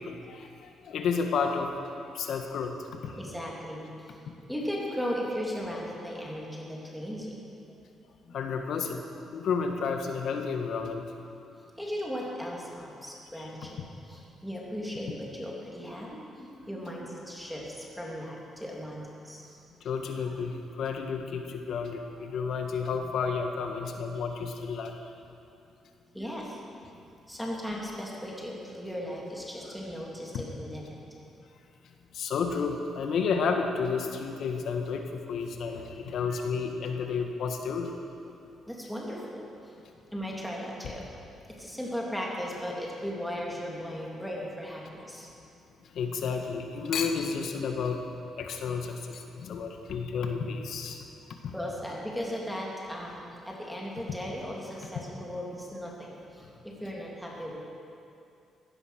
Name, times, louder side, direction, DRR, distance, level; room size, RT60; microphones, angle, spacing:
voice 1, 0.0-1.7 2.0-2.7 3.0-3.2 8.3-9.0 9.3-11.1 13.4-13.5 19.8-25.0 30.3-30.4 32.1-37.9 45.9-48.0 48.4-51.0 51.4-51.5, left 5 dB, 70° left, 4 dB, 1.7 m, -31 dB
voice 2, 3.2-7.4 11.8-13.8 14.1-19.6 26.1-26.6 27.3-31.0 38.7-39.4 40.1-41.1 41.5-45.3 51.5-53.2 53.5-57.6, equal, ahead, -4 dB, 3.4 m, -37 dB
16.5 x 10.5 x 6.7 m, 2.6 s
cardioid pair, 90°, 0 cm